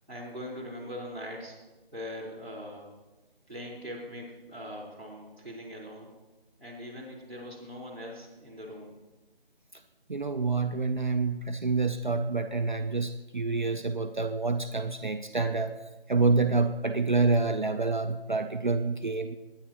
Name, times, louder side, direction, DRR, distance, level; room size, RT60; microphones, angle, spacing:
voice 1, 0.1-1.6 1.9-2.9 3.5-6.1 6.6-8.9, equal, 10° left, -11 dB, 2.5 m, -41 dB
voice 2, 10.1-15.7 16.1-19.4, right 3 dB, 50° right, 7 dB, 0.6 m, -27 dB
21.5 x 9.7 x 2.9 m, 1.1 s
figure-of-eight pair, 175°, 30 cm